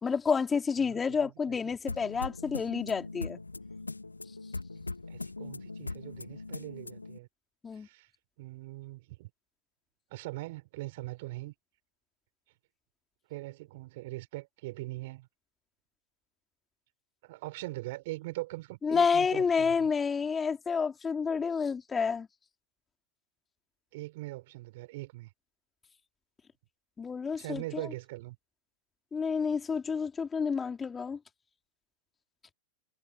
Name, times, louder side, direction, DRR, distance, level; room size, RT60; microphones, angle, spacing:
voice 1, 0.0-3.4 7.6-7.9 18.8-22.3 27.0-27.8 29.1-31.2, left 5 dB, 15° left, 4.2 m, -29 dB
voice 2, 0.8-1.8 5.1-7.3 7.8-8.1 8.4-9.3 10.1-11.5 13.3-15.3 17.2-19.9 23.9-25.3 27.4-28.4, right 20 dB, 50° right, 5.3 m, -41 dB
sound 1, 1.9-7.2, left 3 dB, 80° left, 3.1 m, -40 dB
figure-of-eight pair, 90°, 0 cm